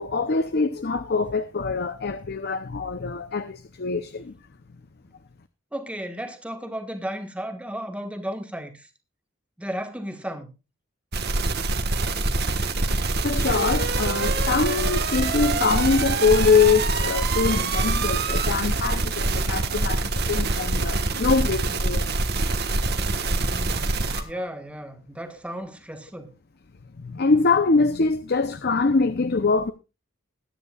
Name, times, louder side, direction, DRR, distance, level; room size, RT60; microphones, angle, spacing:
voice 1, 0.0-4.3 13.1-22.1 24.1-24.3 27.0-29.7, left 4 dB, 50° left, 0.7 m, -23 dB
voice 2, 5.7-8.9 9.6-10.5 23.4-24.0 24.2-26.3, equal, 5° right, 1.5 m, -34 dB
sound 1, 11.1-24.2, right 3 dB, 50° right, 1.5 m, -24 dB
21.0 x 9.6 x 2.4 m
head